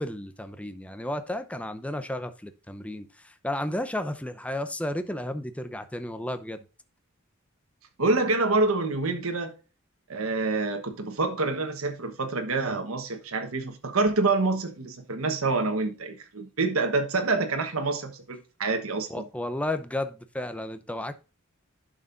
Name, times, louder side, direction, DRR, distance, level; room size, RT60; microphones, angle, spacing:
voice 1, 0.0-6.6 19.1-21.1, left 1 dB, 5° left, 0.7 m, -33 dB
voice 2, 8.0-9.6 10.1-19.2, right 3 dB, 85° right, 1.3 m, -27 dB
11.0 x 6.3 x 2.6 m
head